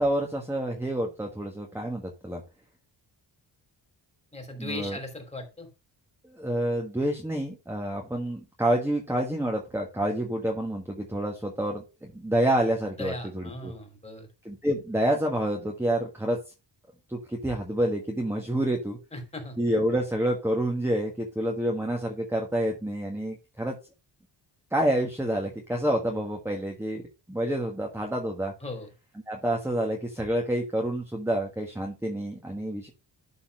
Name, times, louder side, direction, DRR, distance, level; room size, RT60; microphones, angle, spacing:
voice 1, 0.0-2.4 4.6-5.0 6.2-13.7 14.4-16.4 17.1-19.0 19.6-23.8 24.7-27.0 27.3-28.5 29.3-32.9, right 1 dB, 5° right, 0 dB, 1.5 m, -28 dB
voice 2, 4.3-5.7 13.0-14.3 19.1-19.6 28.6-28.9, left 2 dB, 15° left, 4 dB, 3.2 m, -38 dB
12.0 x 4.2 x 5.3 m, 0.29 s
wide cardioid pair, 130°, 44 cm